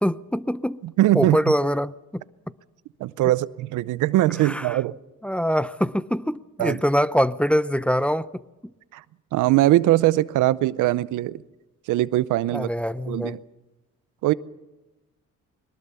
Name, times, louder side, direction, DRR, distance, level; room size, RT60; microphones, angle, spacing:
voice 1, 0.0-0.8 1.1-2.2 4.4-4.8 5.2-8.3 8.6-8.7 12.5-13.4, equal, 5° left, 13 dB, 0.6 m, -24 dB
voice 2, 0.8-1.4 3.0-5.0 6.6-6.8 8.9-9.0 9.3-11.4 11.9-12.7 13.1-13.4 14.2-14.3, right 15 dB, 85° right, 18 dB, 0.7 m, -21 dB
22.0 x 20.0 x 6.9 m, 1.1 s
cardioid pair, 90°, 30 cm